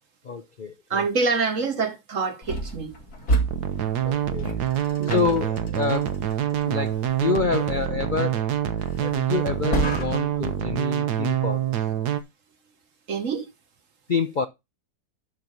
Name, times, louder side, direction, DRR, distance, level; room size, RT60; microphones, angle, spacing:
voice 1, 0.2-1.0 4.0-4.5 5.1-6.2 6.7-8.4 9.0-11.8 14.1-14.5, left 5 dB, 45° left, 0.6 m, -27 dB
voice 2, 0.9-2.9 5.0-5.3 13.1-13.5, right 4 dB, 55° right, 1.6 m, -26 dB
sound 1, 2.4-10.5, right 2 dB, 65° left, 2.9 m, -32 dB
sound 2, 3.5-12.2, right 10 dB, 80° right, 1.5 m, -26 dB
12.0 x 4.6 x 5.2 m
omnidirectional pair, 1.7 m